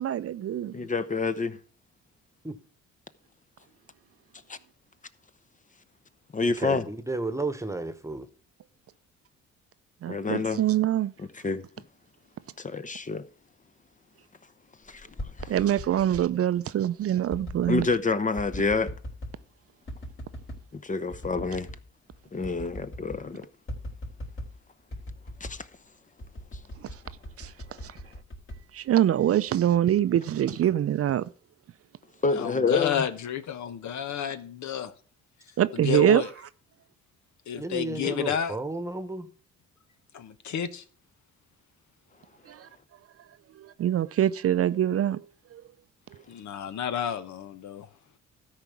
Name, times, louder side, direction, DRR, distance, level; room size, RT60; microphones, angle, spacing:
voice 1, 0.0-0.7 10.0-11.1 15.5-17.9 26.8-26.9 27.4-27.5 27.8-27.9 28.7-31.3 35.6-36.2 42.5-42.7 43.6-45.2 45.5-45.6, right 11 dB, 50° right, 0.5 m, -24 dB
voice 2, 0.7-1.6 4.5-4.6 6.3-6.9 10.1-10.6 11.2-11.7 12.6-13.3 14.9-15.1 15.4-15.5 17.7-18.9 20.8-21.7 22.3-23.5 25.4-25.7 32.2-33.1 38.0-38.1, left 4 dB, 25° left, 0.7 m, -28 dB
voice 3, 6.6-8.3 37.6-39.3, right 2 dB, 10° right, 1.2 m, -32 dB
sound 1, 14.9-16.3 17.3-17.9 18.4-19.4 19.9-20.6 21.1-21.8 22.1-22.2 22.4-23.3 23.7-24.6 24.9-25.6 26.2-29.3 29.7-30.1, equal, 40° left, 3.3 m, -40 dB
voice 4, 32.3-34.9 35.7-36.3 37.5-38.6 40.1-40.8 46.3-47.9, left 9 dB, 70° left, 1.0 m, -31 dB
13.0 x 4.9 x 7.0 m
cardioid pair, 90°, 30 cm